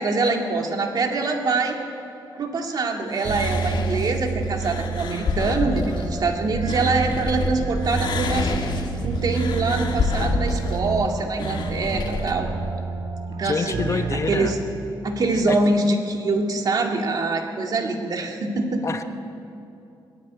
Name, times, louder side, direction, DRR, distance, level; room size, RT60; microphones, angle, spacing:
voice 1, 0.0-1.8 2.4-8.5 9.0-12.5 13.3-14.0 14.3-14.6 15.0-19.0, right 3 dB, 50° right, 3 dB, 2.0 m, -24 dB
sound 1, 3.1-7.5 7.8-12.3, left 4 dB, 65° left, 2.0 m, -29 dB
sound 2, 3.2-14.8, right 4 dB, 70° right, 3.2 m, -29 dB
voice 2, 13.4-14.6 15.5-15.6 18.8-19.0, left 4 dB, 35° left, 8 dB, 0.9 m, -26 dB
20.0 x 15.5 x 9.8 m, 2.7 s
wide cardioid pair, 160°, 8 cm